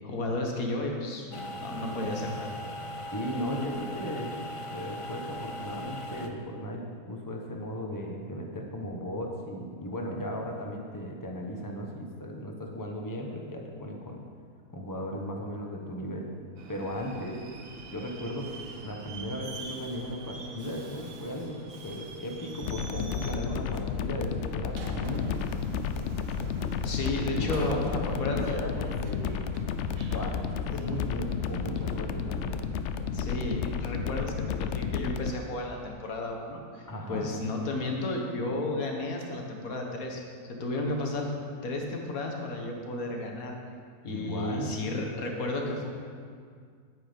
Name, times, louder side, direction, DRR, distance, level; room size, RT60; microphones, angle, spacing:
voice 1, 0.0-2.5 26.8-27.9 28.2-28.4 33.1-40.2 40.5-41.3 41.6-43.5 44.0-45.9, left 2 dB, 90° left, 1 dB, 1.7 m, -33 dB
sound 1, 1.3-6.3, left 1 dB, 50° left, 0.4 m, -39 dB
voice 2, 3.1-4.4 4.7-14.2 14.7-16.3 16.7-17.4 17.9-26.1 27.4-32.6 36.9-37.3 44.1-44.7, equal, 15° left, 0 dB, 1.0 m, -36 dB
Subway metro underground, 16.6-35.0, right 3 dB, 80° right, 1.4 m, -46 dB
sound 2, 22.6-35.3, left 7 dB, 65° left, 0.8 m, -32 dB
9.5 x 9.4 x 5.2 m, 2.1 s
omnidirectional pair, 1.4 m